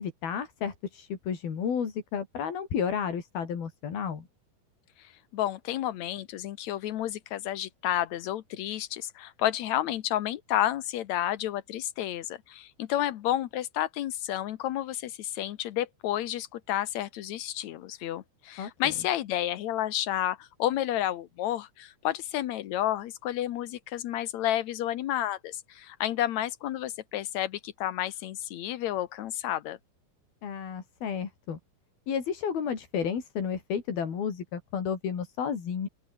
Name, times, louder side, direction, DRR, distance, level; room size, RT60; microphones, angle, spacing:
voice 1, 0.0-4.3 18.6-18.9 30.4-31.6 32.1-35.9, left 7 dB, 85° left, 5.5 m, -32 dB
voice 2, 5.3-29.8, left 12 dB, 70° left, 1.8 m, -31 dB
open air
omnidirectional pair, 4.2 m